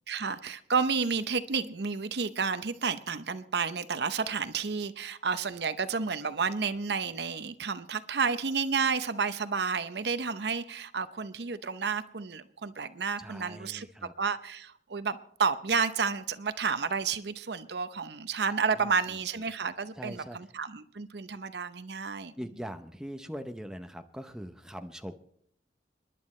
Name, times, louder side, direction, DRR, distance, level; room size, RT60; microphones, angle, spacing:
voice 1, 0.1-13.9 14.2-22.3, right 5 dB, 70° right, 12 dB, 0.7 m, -31 dB
voice 2, 13.2-14.1 18.7-19.2 20.0-20.4 22.4-25.1, equal, 5° right, 7 dB, 0.6 m, -41 dB
30.0 x 10.5 x 3.2 m, 0.66 s
head